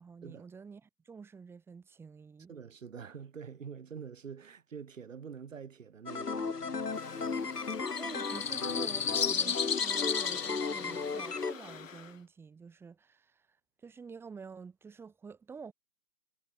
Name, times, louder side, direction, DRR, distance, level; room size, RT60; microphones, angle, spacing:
voice 1, 0.0-2.5 8.0-15.7, right 5 dB, 5° right, 3.2 m, -49 dB
voice 2, 2.5-6.5, right 6 dB, 50° right, 4.7 m, -46 dB
sound 1, 6.1-11.5, left 4 dB, 70° left, 4.3 m, -35 dB
sound 2, 6.9-12.1, left 6 dB, 50° left, 2.3 m, -35 dB
figure-of-eight pair, 145°, 49 cm